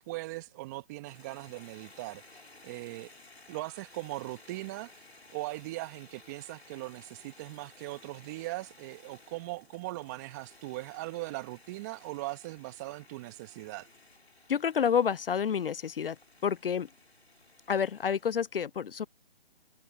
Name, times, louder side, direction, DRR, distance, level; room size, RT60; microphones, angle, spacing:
voice 1, 0.0-2.2 2.6-3.1 3.5-5.0 5.3-13.9, right 21 dB, 15° right, 1.1 m, -39 dB
sound 1, 1.0-18.3, left 3 dB, 85° left, 3.4 m, -57 dB
voice 2, 14.5-16.2 16.4-16.9 17.7-19.1, left 7 dB, 65° left, 0.5 m, -29 dB
figure-of-eight pair, 150°, 31 cm